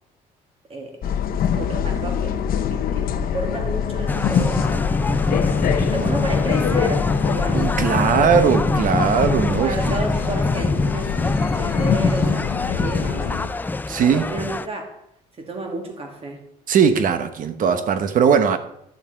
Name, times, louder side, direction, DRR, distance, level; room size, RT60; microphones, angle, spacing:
voice 1, 0.7-1.2 1.6-2.4 2.7-4.9 5.7-8.7 9.4-13.5 14.1-15.0 15.4-16.4, right 2 dB, 35° right, 2.5 m, -32 dB
sound 1, 1.0-13.5, left 8 dB, 60° left, 0.9 m, -25 dB
sound 2, 4.1-14.7, left 2 dB, 10° left, 0.4 m, -24 dB
voice 2, 7.5-9.7 13.9-14.2 16.7-18.6, right 7 dB, 55° right, 1.1 m, -19 dB
11.5 x 6.9 x 4.6 m
cardioid pair, 110°, 17 cm